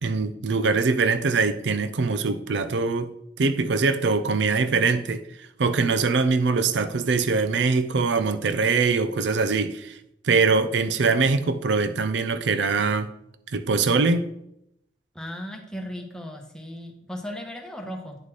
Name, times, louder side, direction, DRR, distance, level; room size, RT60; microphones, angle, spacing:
voice 1, 0.0-3.1 3.4-5.3 5.6-10.0 10.2-13.1 13.5-14.3, right 4 dB, 85° right, 0.5 m, -23 dB
voice 2, 15.1-18.2, equal, 5° left, 1.2 m, -36 dB
9.8 x 4.2 x 4.8 m
head